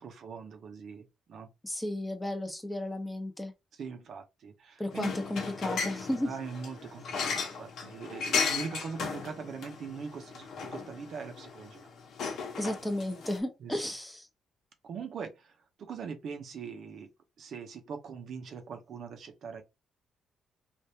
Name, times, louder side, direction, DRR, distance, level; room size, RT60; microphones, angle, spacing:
voice 1, 0.0-1.5 3.7-5.2 6.2-11.9 13.6-13.8 14.8-15.5 15.8-17.1 17.4-19.6, right 6 dB, 65° right, 0.7 m, -41 dB
voice 2, 1.6-3.5 4.8-6.3 12.6-14.3, left 1 dB, 10° left, 0.9 m, -34 dB
sound 1, 4.9-13.4, left 5 dB, 70° left, 0.9 m, -36 dB
3.4 x 2.4 x 2.8 m
cardioid pair, 90°, 0 cm